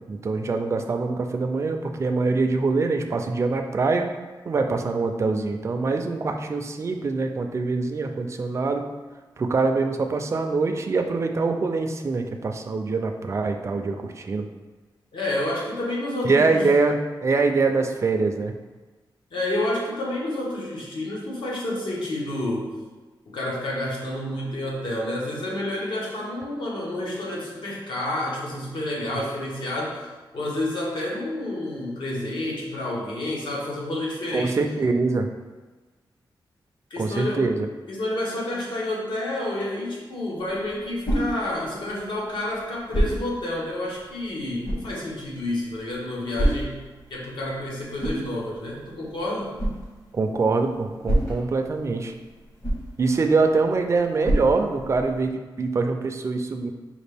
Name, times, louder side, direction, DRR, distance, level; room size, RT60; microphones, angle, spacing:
voice 1, 0.1-4.1 4.5-8.8 9.4-14.5 16.2-18.5 29.1-29.2 34.3-35.3 37.0-37.7 50.1-52.1 53.0-56.7, right 3 dB, 35° right, 5 dB, 0.3 m, -24 dB
voice 2, 15.1-16.7 19.3-22.7 23.3-30.1 30.3-34.6 36.9-37.5 37.9-49.6, left 1 dB, 75° left, -4 dB, 1.1 m, -29 dB
sound 1, 40.4-55.3, right 1 dB, 40° left, 1.0 m, -31 dB
5.1 x 2.5 x 3.3 m, 1.3 s
wide cardioid pair, 130°, 8 cm